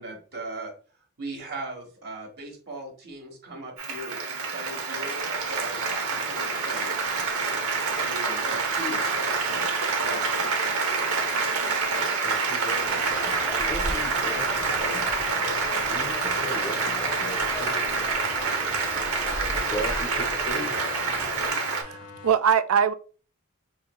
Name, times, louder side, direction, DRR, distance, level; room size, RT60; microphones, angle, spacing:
voice 1, 0.0-6.9 7.5-9.7 10.0-10.2, right 2 dB, 50° right, 1.2 m, -39 dB
Applause, 3.8-21.8, right 4 dB, 90° right, 0.8 m, -27 dB
voice 2, 12.0-15.1 15.9-18.1 19.6-20.8, right 1 dB, 35° left, 0.5 m, -38 dB
sound 1, 12.8-21.5, equal, 10° right, 0.7 m, -38 dB
sound 2, 14.0-22.3, left 5 dB, 80° left, 0.6 m, -39 dB
voice 3, 21.7-22.9, right 7 dB, 70° right, 0.4 m, -22 dB
5.4 x 2.9 x 2.2 m
head